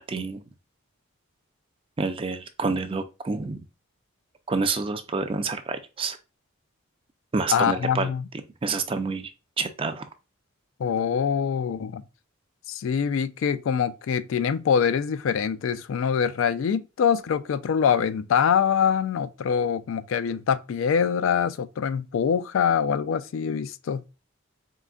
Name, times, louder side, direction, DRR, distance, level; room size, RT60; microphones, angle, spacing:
voice 1, 0.1-0.4 2.0-3.6 4.5-6.2 7.3-8.1 8.6-9.3 9.6-10.0, right 4 dB, 25° right, 0.4 m, -28 dB
voice 2, 7.5-8.2 10.8-12.0 12.7-24.0, left 7 dB, 65° left, 0.3 m, -24 dB
4.2 x 3.8 x 2.3 m
head